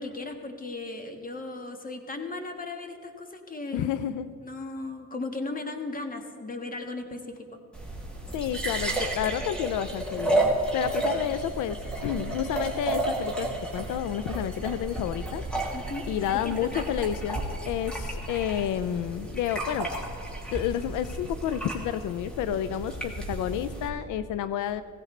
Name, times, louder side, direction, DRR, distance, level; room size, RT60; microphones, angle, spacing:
voice 1, 0.0-3.9 4.4-7.5 15.7-16.1 16.3-16.8, left 3 dB, 30° left, 5 dB, 1.5 m, -36 dB
voice 2, 3.7-4.3 8.3-10.4 10.7-11.8 12.0-13.5 13.7-15.4 16.1-19.9 20.5-24.8, left 10 dB, 85° left, 13 dB, 0.5 m, -30 dB
sound 1, 7.7-23.9, right 2 dB, 5° left, 2.7 m, -32 dB
16.5 x 15.5 x 3.3 m, 2.2 s
cardioid pair, 90°, 30 cm